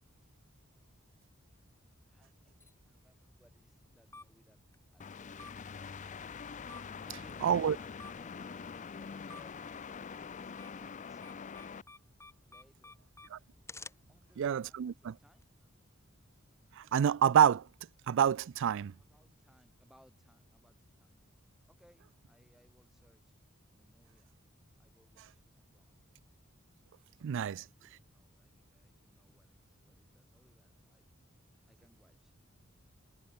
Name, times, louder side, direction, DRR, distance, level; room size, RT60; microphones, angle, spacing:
sound 1, 1.5-15.4, left 3 dB, 15° left, 2.0 m, -57 dB
voice 1, 2.1-4.7 4.9-5.8 6.9-11.5 12.4-13.0 14.1-15.7 19.0-21.2 21.7-23.3 23.7-24.4 24.8-26.0 27.3-31.1 31.7-32.3, equal, ahead, 5.9 m, -67 dB
sound 2, 5.0-11.8, left 6 dB, 35° left, 0.5 m, -45 dB
voice 2, 7.4-7.8 13.3-13.4 14.4-15.1 16.8-17.7 18.1-18.9 27.2-27.6, right 8 dB, 60° right, 0.4 m, -27 dB
head